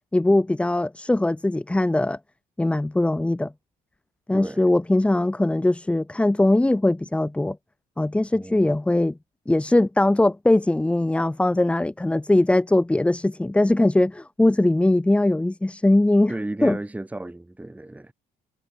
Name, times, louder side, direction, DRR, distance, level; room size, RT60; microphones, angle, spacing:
voice 1, 0.1-2.2 2.6-3.5 4.3-7.6 8.0-9.2 9.5-16.4 16.6-16.8, left 1 dB, 5° left, 0.7 m, -20 dB
voice 2, 4.3-4.7 8.3-8.8 16.3-18.1, right 1 dB, 10° right, 2.7 m, -34 dB
cardioid pair, 110°, 17 cm